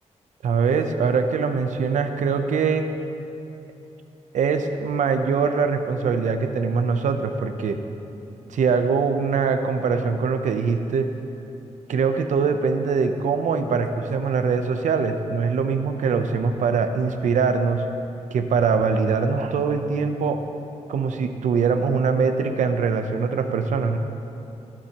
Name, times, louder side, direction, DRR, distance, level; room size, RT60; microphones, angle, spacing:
voice 1, 0.4-2.9 4.3-7.8 8.5-11.1 11.9-17.8 18.3-20.4 20.9-24.0, right 5 dB, 85° right, 7 dB, 0.7 m, -22 dB
21.5 x 7.4 x 3.0 m, 2.9 s
wide cardioid pair, 120°, 12 cm